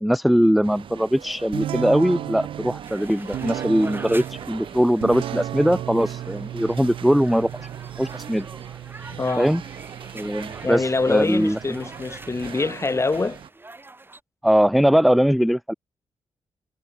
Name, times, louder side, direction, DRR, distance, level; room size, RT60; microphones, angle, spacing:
voice 1, 0.0-7.7 8.0-8.5 9.4-9.6 10.1-11.8 14.4-15.7, equal, ahead, 0.6 m, -21 dB
sound 1, 0.6-13.5, right 8 dB, 70° right, 5.8 m, -42 dB
sound 2, 1.5-13.0, right 12 dB, 85° right, 1.7 m, -35 dB
sound 3, 2.8-14.2, right 2 dB, 25° right, 4.4 m, -44 dB
voice 2, 9.1-9.5 10.6-13.4, left 3 dB, 30° left, 3.2 m, -24 dB
cardioid pair, 60°, 9 cm